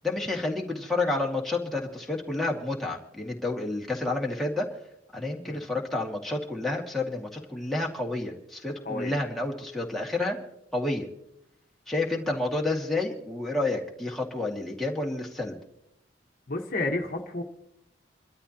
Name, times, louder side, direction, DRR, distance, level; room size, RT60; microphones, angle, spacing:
voice 1, 0.0-4.7 5.1-10.4 10.7-11.1 11.9-15.6, left 2 dB, ahead, -2 dB, 2.0 m, -30 dB
voice 2, 16.5-17.4, left 2 dB, 50° left, 3 dB, 1.3 m, -30 dB
27.5 x 13.0 x 2.9 m, 0.81 s
head